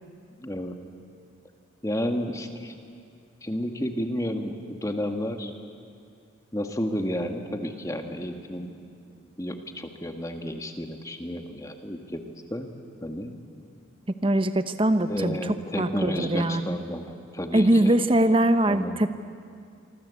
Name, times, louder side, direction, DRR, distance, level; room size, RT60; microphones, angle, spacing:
voice 1, 0.4-0.8 1.8-2.7 3.4-5.5 6.5-8.8 9.1-12.2 12.5-12.7 13.0-13.3 15.1-17.9 18.7-19.0, equal, 15° left, 5 dB, 1.7 m, -31 dB
voice 2, 14.2-15.4 15.8-16.6 17.5-19.1, right 1 dB, 25° right, 11 dB, 1.0 m, -22 dB
26.0 x 25.5 x 8.4 m, 2.3 s
head